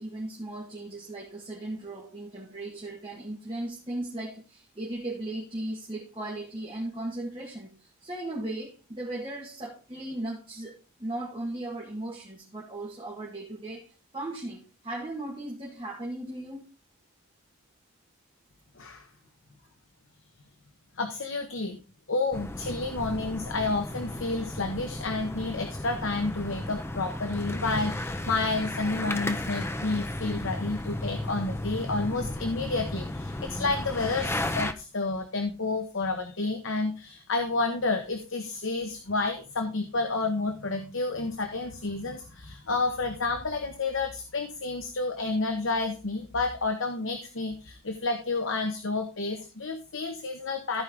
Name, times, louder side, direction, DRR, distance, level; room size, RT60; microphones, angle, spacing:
voice 1, 0.0-16.6, right 1 dB, 25° right, -4 dB, 1.8 m, -37 dB
voice 2, 18.8-19.1 21.0-21.8 22.1-50.8, left 3 dB, 60° left, 6 dB, 1.0 m, -30 dB
sound 1, 22.3-34.7, left 1 dB, 10° left, 0.5 m, -34 dB
14.5 x 4.9 x 3.6 m, 0.33 s
head